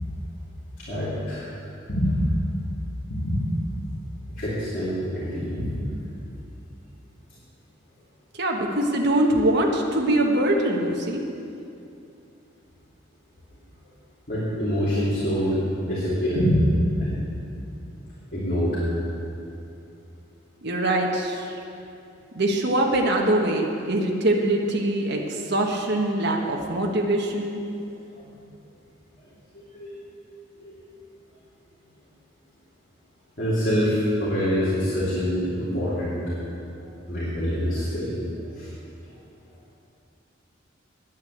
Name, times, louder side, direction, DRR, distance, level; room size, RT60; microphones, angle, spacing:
voice 1, 0.8-1.4 1.9-2.5 3.1-3.5 4.4-5.7 14.3-17.3 18.3-18.8 29.7-29.9 30.6-30.8 33.4-36.2 37.1-38.1 38.4-38.7, equal, 45° left, -10 dB, 3.2 m, -25 dB
voice 2, 8.4-11.2 20.6-21.5 22.3-27.6, right 1 dB, 60° right, 0 dB, 1.3 m, -23 dB
10.5 x 9.3 x 7.9 m, 2.7 s
head